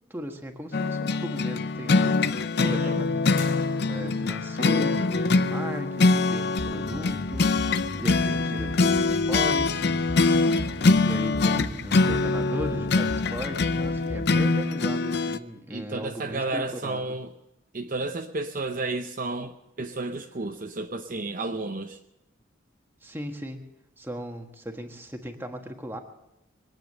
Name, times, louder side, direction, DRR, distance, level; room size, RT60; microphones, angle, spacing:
voice 1, 0.1-3.6 3.9-10.4 11.0-17.2 23.0-23.7 24.0-26.0, equal, 10° right, 4 dB, 1.4 m, -37 dB
sound 1, 0.7-15.4, left 3 dB, 55° left, 0.6 m, -24 dB
voice 2, 2.6-3.1 15.7-17.3 17.7-22.0, right 2 dB, 40° right, 5 dB, 0.7 m, -32 dB
sound 2, 3.4-4.3, left 5 dB, 75° left, 3.3 m, -44 dB
sound 3, 6.6-14.6, equal, 30° left, 1.3 m, -37 dB
22.0 x 9.2 x 6.7 m, 0.88 s
head